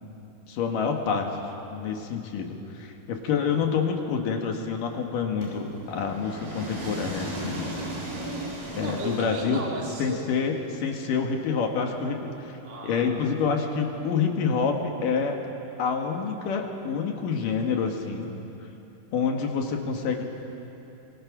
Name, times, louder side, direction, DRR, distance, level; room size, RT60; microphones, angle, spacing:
voice 1, 0.5-1.3 1.7-7.8 8.8-9.6 10.0-12.6 12.8-15.4 15.8-18.3 19.1-20.2, left 6 dB, 65° left, 3 dB, 3.0 m, -27 dB
sound 1, 5.4-9.8, right 1 dB, 90° right, 6.5 m, -36 dB
voice 2, 7.9-10.3 12.6-13.2, right 2 dB, 20° right, -3 dB, 2.3 m, -35 dB
26.0 x 23.5 x 6.1 m, 2.9 s
omnidirectional pair, 4.4 m